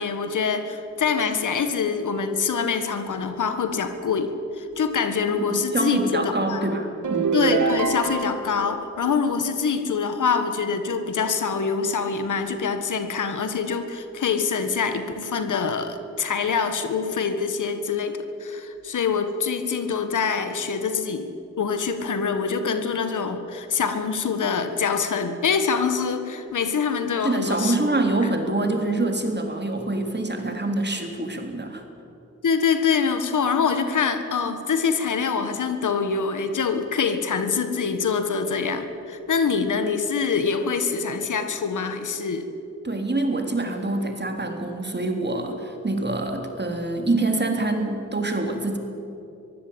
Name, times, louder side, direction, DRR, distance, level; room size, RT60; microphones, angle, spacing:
voice 1, 0.0-6.6 7.3-21.3 21.6-27.8 32.4-42.5, left 5 dB, 85° left, 9 dB, 1.6 m, -25 dB
voice 2, 5.4-7.4 27.2-31.8 42.8-48.8, right 2 dB, 35° right, 4 dB, 3.6 m, -25 dB
sound 1, 7.0-8.5, right 5 dB, 80° right, 2.4 m, -24 dB
23.5 x 15.5 x 8.7 m, 2.9 s
cardioid pair, 50°, 30 cm